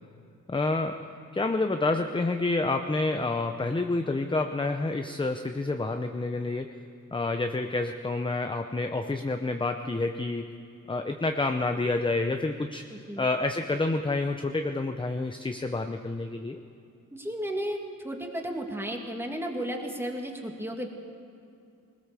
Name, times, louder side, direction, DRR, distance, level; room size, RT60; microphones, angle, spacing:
voice 1, 0.5-6.8 7.1-10.5 10.9-12.8 13.2-16.6, left 2 dB, 15° left, 6 dB, 0.7 m, -28 dB
voice 2, 12.9-13.3 17.1-20.9, equal, 5° right, 1 dB, 2.2 m, -34 dB
20.5 x 19.5 x 6.9 m, 2.5 s
wide cardioid pair, 135°, 33 cm